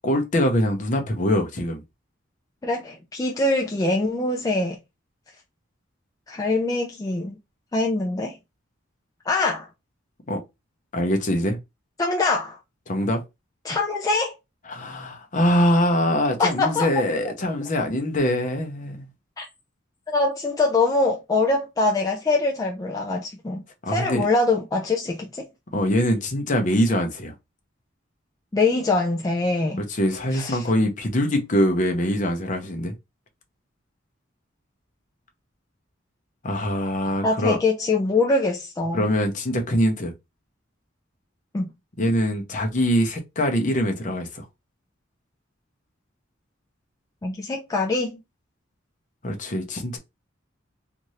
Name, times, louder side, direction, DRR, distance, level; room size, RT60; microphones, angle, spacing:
voice 1, 0.0-1.8 10.3-10.4 10.9-11.6 12.9-13.2 14.6-19.1 23.8-24.3 25.7-27.3 29.8-32.9 36.4-37.6 38.9-40.1 42.0-44.5 49.2-50.0, equal, 40° left, 0.7 m, -23 dB
voice 2, 2.6-4.8 6.3-7.4 7.7-8.4 9.3-9.7 12.0-12.6 13.6-14.3 16.4-16.9 19.4-19.5 20.1-25.5 28.5-29.8 30.3-30.6 37.2-39.0 41.5-41.7 47.2-48.2, left 3 dB, 20° left, 0.4 m, -23 dB
2.7 x 2.5 x 3.1 m
head